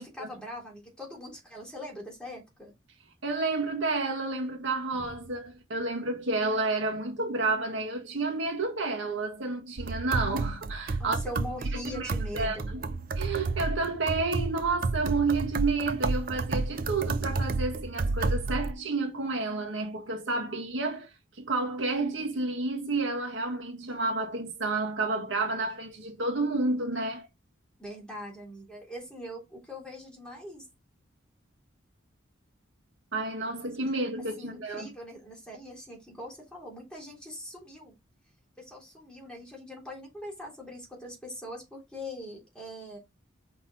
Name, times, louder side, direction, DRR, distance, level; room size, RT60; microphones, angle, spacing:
voice 1, 0.0-2.7 11.0-12.7 27.8-30.7 34.4-37.9 38.6-43.0, left 1 dB, 5° left, 3.4 m, -42 dB
voice 2, 3.2-11.2 11.7-12.1 12.3-12.8 13.2-21.1 21.4-27.3 33.1-34.9, right 3 dB, 80° right, 1.9 m, -30 dB
sound 1, 9.8-18.7, right 3 dB, 45° right, 0.5 m, -31 dB
5.8 x 4.4 x 4.4 m
head